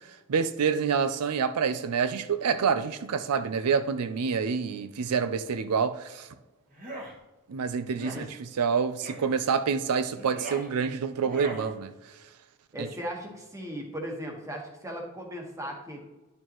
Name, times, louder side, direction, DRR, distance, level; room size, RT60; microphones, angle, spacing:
voice 1, 0.3-6.3 7.5-11.9 12.8-12.9, right 6 dB, 85° right, 0.5 m, -27 dB
sound 1, 6.7-7.1 7.9-8.2 9.0-9.3 10.1-10.7 11.2-11.7, right 2 dB, 35° right, 1.4 m, -40 dB
voice 2, 12.7-16.0, equal, 15° right, 1.3 m, -37 dB
10.5 x 6.6 x 3.0 m
head